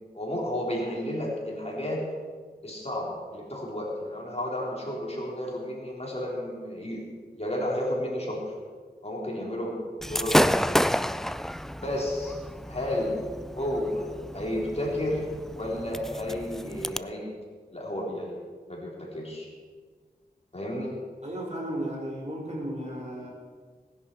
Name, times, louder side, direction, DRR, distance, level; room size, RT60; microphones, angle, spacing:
voice 1, 0.1-2.0 2.6-8.5 9.0-9.8 10.1-10.9 11.8-12.4 12.7-13.3 13.5-14.1 14.3-15.3 15.5-17.3 17.7-18.4 18.7-19.5 20.5-20.9, left 1 dB, 40° left, -3 dB, 4.1 m, -32 dB
Gunshot gunfire / Fireworks, 10.0-17.0, equal, ahead, 0.4 m, -29 dB
voice 2, 21.2-23.3, right 1 dB, 45° right, -3 dB, 4.9 m, -34 dB
18.5 x 10.5 x 4.7 m, 1.5 s
wide cardioid pair, 45°, 17 cm